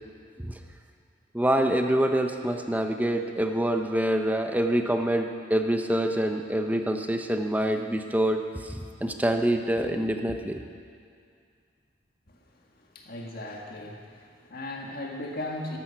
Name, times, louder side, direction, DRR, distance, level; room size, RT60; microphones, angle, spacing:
voice 1, 1.3-8.8 9.0-10.6, right 1 dB, 10° right, 5 dB, 0.7 m, -26 dB
voice 2, 12.3-15.8, left 1 dB, 50° left, 0 dB, 1.8 m, -38 dB
14.0 x 11.0 x 5.9 m, 2.3 s
head